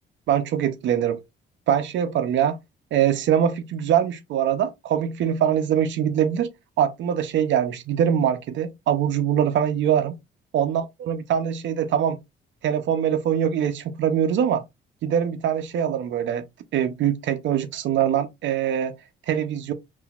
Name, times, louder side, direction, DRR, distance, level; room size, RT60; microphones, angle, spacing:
voice 1, 0.3-1.2 1.7-2.6 2.9-6.5 6.8-10.1 10.5-12.2 12.6-14.6 15.0-16.4 16.7-18.9 19.3-19.7, right 9 dB, 70° right, 0.5 m, -23 dB
3.8 x 2.5 x 2.3 m
cardioid pair, 90°, 20 cm